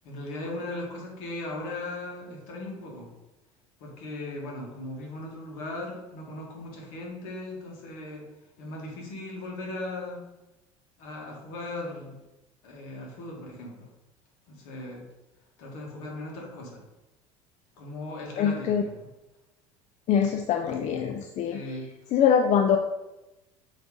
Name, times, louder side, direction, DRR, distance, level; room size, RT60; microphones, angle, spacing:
voice 1, 0.0-3.1 3.8-8.2 8.6-10.2 11.0-12.2 12.6-13.9 14.5-15.0 15.6-16.8 17.8-18.9 21.4-21.9, left 2 dB, 60° left, -1 dB, 1.8 m, -38 dB
voice 2, 18.4-18.8 20.1-21.6 22.1-22.8, left 8 dB, 45° left, 5 dB, 0.5 m, -23 dB
7.7 x 3.3 x 3.7 m, 0.99 s
figure-of-eight pair, 65°, 17 cm